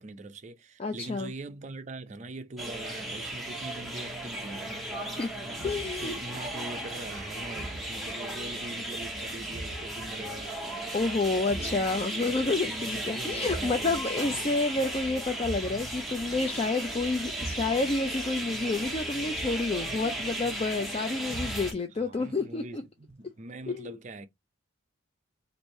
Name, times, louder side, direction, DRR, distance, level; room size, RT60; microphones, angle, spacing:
voice 1, 0.0-4.8 5.4-10.8 11.5-14.6 22.0-24.3, right 2 dB, 35° right, 0.5 m, -43 dB
voice 2, 0.8-1.3 5.2-5.3 5.6-6.1 10.9-22.8 23.7-23.9, left 3 dB, 30° left, 0.4 m, -29 dB
sound 1, 2.6-21.7, right 1 dB, ahead, 0.8 m, -35 dB
3.2 x 2.6 x 4.2 m
head